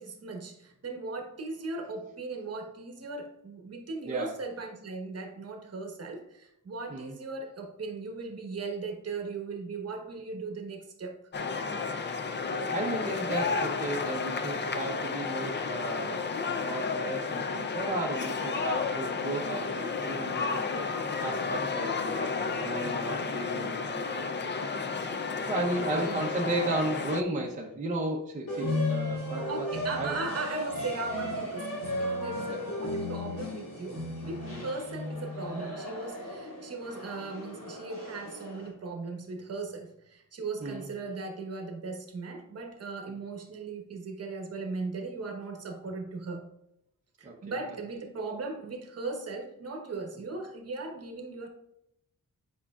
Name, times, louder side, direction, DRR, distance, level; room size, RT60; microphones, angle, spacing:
voice 1, 0.0-11.2 25.8-26.2 29.5-46.5 47.2-51.5, right 3 dB, 45° right, 4 dB, 1.1 m, -38 dB
sound 1, 11.3-27.2, left 4 dB, 35° left, 0.4 m, -32 dB
voice 2, 12.4-16.2 16.6-20.9 21.2-22.3 22.6-24.5 25.5-29.7 29.9-30.2 32.5-32.6 34.5-34.7 40.6-40.9 47.2-47.6, right 2 dB, 20° right, -1 dB, 0.8 m, -34 dB
sound 2, 28.5-38.7, left 1 dB, 70° left, 2.2 m, -35 dB
8.4 x 5.5 x 2.4 m, 0.82 s
wide cardioid pair, 155°, 34 cm